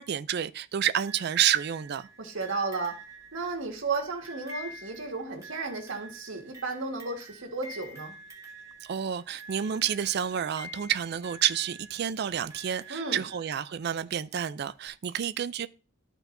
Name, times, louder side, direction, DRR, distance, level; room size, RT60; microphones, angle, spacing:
voice 1, 0.0-2.1 8.8-15.7, right 9 dB, 55° right, 0.4 m, -29 dB
sound 1, 1.1-13.9 14.9-15.0, right 1 dB, 15° right, 1.4 m, -47 dB
voice 2, 2.2-2.9 3.3-8.1 12.9-13.2, right 3 dB, 70° right, 1.8 m, -33 dB
13.0 x 4.5 x 2.6 m
head